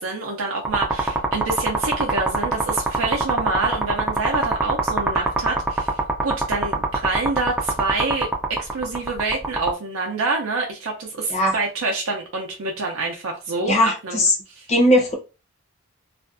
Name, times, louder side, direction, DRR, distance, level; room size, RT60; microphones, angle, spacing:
voice 1, 0.0-5.9 6.2-14.3 14.6-14.7, right 3 dB, 75° right, 0.5 m, -27 dB
sound 1, 0.6-9.7, right 2 dB, 10° right, 0.3 m, -23 dB
voice 2, 13.7-14.3 14.7-15.1, left 1 dB, 30° left, 0.6 m, -18 dB
2.4 x 2.2 x 2.4 m
head